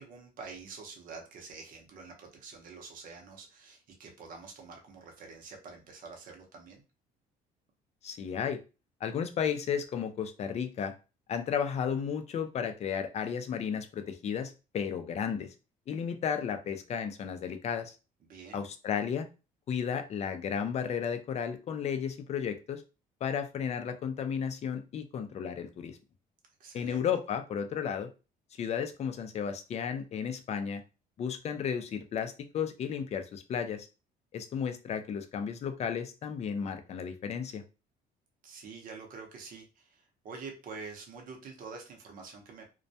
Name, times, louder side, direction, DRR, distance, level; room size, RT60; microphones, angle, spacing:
voice 1, 0.0-6.8 18.2-18.6 26.6-27.1 38.4-42.6, right 4 dB, 55° right, 2 dB, 0.7 m, -47 dB
voice 2, 8.0-8.6 9.0-10.9 11.3-15.5 15.9-17.9 18.5-19.3 19.7-22.8 23.2-26.0 26.7-28.1 28.5-30.8 31.2-33.9 34.3-37.6, left 7 dB, 40° left, 7 dB, 0.4 m, -33 dB
2.2 x 2.1 x 2.6 m, 0.31 s
cardioid pair, 110°, 17 cm